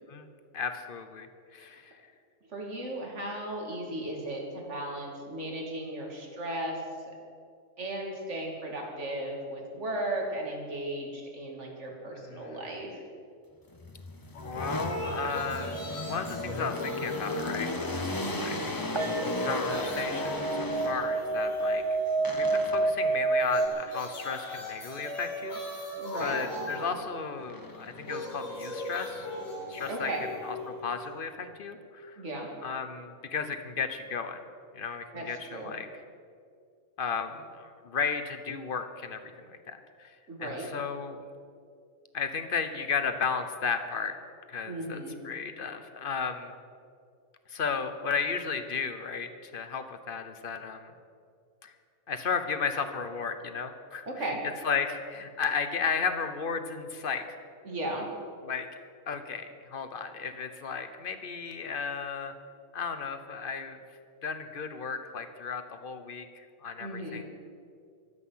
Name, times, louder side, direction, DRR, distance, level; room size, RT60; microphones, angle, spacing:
voice 1, 0.5-1.3 1.5-2.0 12.2-12.8 14.4-18.8 19.4-21.8 22.4-25.6 26.2-29.3 29.7-30.1 30.4-32.2 32.6-34.4 34.7-35.9 37.0-40.1 40.4-41.2 42.1-44.2 44.5-46.5 47.5-50.9 51.6-51.7 52.1-54.2 54.6-57.4 58.4-58.7 59.1-62.3 62.7-63.8 64.2-67.2, left 5 dB, 45° left, 9 dB, 1.1 m, -34 dB
voice 2, 2.5-6.8 7.8-13.0 18.2-18.6 26.0-26.4 29.9-30.3 32.2-32.5 35.1-35.7 40.3-40.7 44.6-45.2 54.1-54.4 57.6-58.1 66.8-67.2, right 1 dB, 60° right, 0 dB, 2.6 m, -36 dB
sound 1, 13.7-21.4 22.2-23.1 26.2-27.0 27.5-29.9, left 2 dB, 20° left, 0.8 m, -37 dB
sound 2, 14.3-18.3 18.6-22.4 23.4-31.4, left 1 dB, 85° left, 4.5 m, -39 dB
sound 3, 19.0-23.7, right 3 dB, 25° right, 0.6 m, -29 dB
23.0 x 8.2 x 5.7 m, 2.3 s
omnidirectional pair, 1.4 m